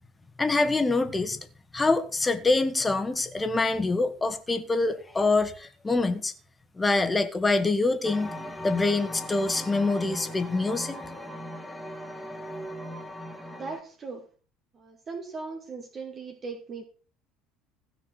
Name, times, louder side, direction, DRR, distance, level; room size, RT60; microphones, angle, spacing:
voice 1, 0.4-1.5 1.7-6.3 6.8-8.3 8.6-11.0, left 3 dB, 20° left, 1.7 m, -25 dB
sound 1, 8.0-13.8, equal, ahead, 2.4 m, -39 dB
voice 2, 13.6-14.3 14.7-16.8, right 4 dB, 35° right, 2.3 m, -38 dB
15.5 x 6.2 x 6.1 m
hypercardioid pair, 65°, 0 cm